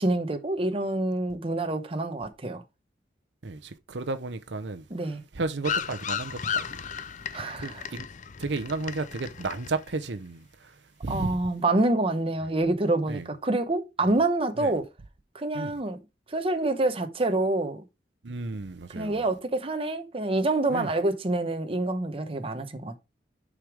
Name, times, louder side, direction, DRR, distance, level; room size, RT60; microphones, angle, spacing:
voice 1, 0.0-2.6 4.9-5.2 7.3-7.8 11.1-14.9 15.3-16.0 16.3-17.8 18.9-23.0, right 2 dB, 30° right, 0.9 m, -27 dB
voice 2, 3.4-6.9 7.6-8.1 8.4-11.4 13.1-13.3 14.6-14.7 15.5-15.7 18.2-19.2 20.7-20.9, right 3 dB, 75° right, 0.8 m, -33 dB
sound 1, 5.6-10.0, left 7 dB, 45° left, 0.5 m, -34 dB
6.6 x 5.1 x 4.8 m
head